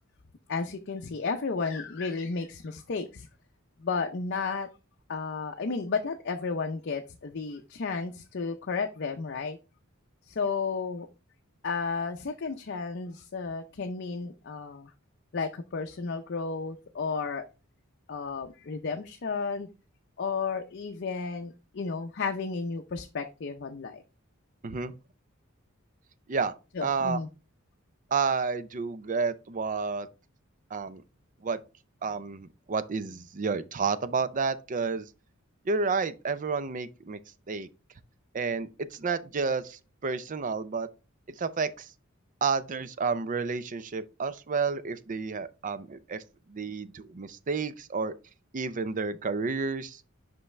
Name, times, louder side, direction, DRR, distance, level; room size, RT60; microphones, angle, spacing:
voice 1, 0.5-3.3 3.8-4.7 5.1-9.6 10.3-11.1 11.6-14.9 15.3-17.4 18.1-19.7 20.2-24.0 26.7-27.3, left 4 dB, 55° left, 0.6 m, -33 dB
voice 2, 24.6-24.9 26.3-26.5 26.8-27.2 28.1-30.1 30.7-31.0 31.4-31.6 32.0-35.1 35.7-37.2 37.5-37.7 38.3-40.9 41.4-41.9 42.4-46.2 46.5-48.1 48.5-50.0, right 5 dB, 40° right, 0.5 m, -30 dB
5.6 x 5.4 x 3.2 m
head